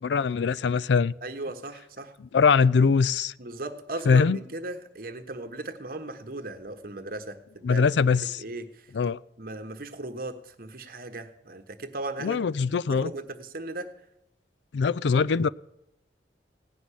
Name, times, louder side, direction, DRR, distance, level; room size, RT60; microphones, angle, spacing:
voice 1, 0.0-1.1 2.3-3.3 4.1-4.4 7.6-8.4 8.9-9.2 12.2-13.1 14.7-15.5, left 5 dB, 90° left, 0.4 m, -22 dB
voice 2, 1.2-2.1 3.4-7.9 8.4-8.9 9.4-12.4 12.9-13.9, right 2 dB, 55° right, 1.3 m, -37 dB
16.5 x 6.2 x 9.9 m
head